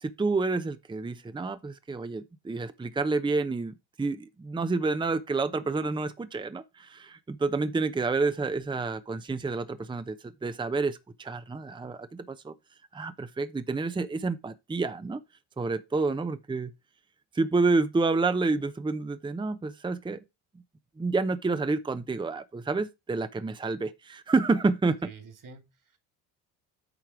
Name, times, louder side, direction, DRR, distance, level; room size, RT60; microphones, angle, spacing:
voice 1, 0.0-12.5 12.9-15.2 15.6-16.7 17.3-20.2 21.0-25.0, right 3 dB, 10° right, 0.7 m, -29 dB
voice 2, 25.0-26.0, right 4 dB, 50° right, 2.5 m, -48 dB
9.0 x 4.5 x 4.8 m
hypercardioid pair, 65°, 41 cm